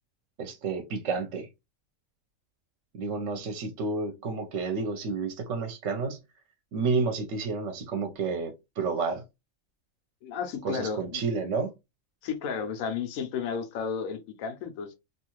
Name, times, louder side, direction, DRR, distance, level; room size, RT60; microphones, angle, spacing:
voice 1, 0.4-1.5 2.9-6.2 6.7-9.2 10.6-11.7, right 4 dB, 70° right, 0.9 m, -30 dB
voice 2, 10.2-11.2 12.2-15.0, left 6 dB, 90° left, 1.1 m, -33 dB
2.7 x 2.3 x 3.0 m
omnidirectional pair, 1.4 m